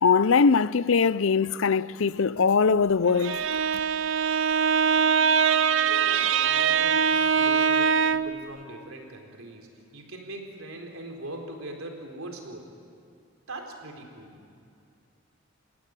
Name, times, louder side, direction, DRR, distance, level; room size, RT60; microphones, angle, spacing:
voice 1, 0.0-3.4, left 5 dB, 70° left, 0.5 m, -21 dB
Bowed string instrument, 3.1-8.4, right 6 dB, 65° right, 0.7 m, -23 dB
voice 2, 5.8-7.0 7.4-12.7 13.5-14.3, right 1 dB, 85° right, 4.1 m, -40 dB
29.5 x 16.5 x 9.0 m
head